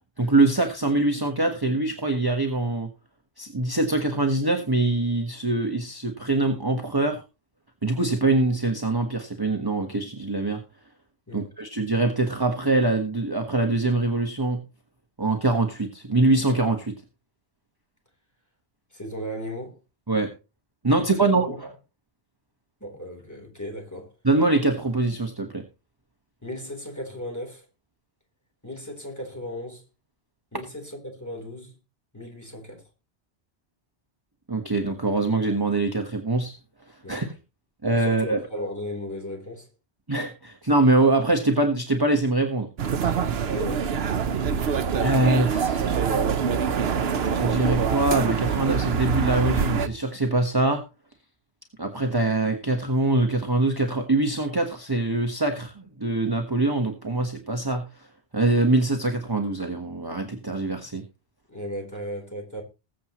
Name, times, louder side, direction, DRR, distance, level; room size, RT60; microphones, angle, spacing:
voice 1, 0.2-2.9 3.4-7.2 7.8-10.6 11.3-14.6 15.2-16.9 20.1-20.3 20.8-21.7 24.2-25.6 34.5-36.6 37.1-37.2 37.8-38.4 40.1-42.7 45.0-46.0 47.2-50.8 51.8-58.1 58.3-61.0, right 2 dB, 20° right, 1.2 m, -23 dB
voice 2, 18.9-19.8 21.1-21.6 22.8-24.1 26.4-27.7 28.6-29.8 30.5-31.8 32.1-32.8 37.0-37.3 38.0-39.7 43.5-44.0 61.5-62.6, equal, 15° left, 3.7 m, -36 dB
sound 1, 42.8-49.9, right 6 dB, 70° right, 1.0 m, -24 dB
20.5 x 7.7 x 3.0 m
omnidirectional pair, 1.1 m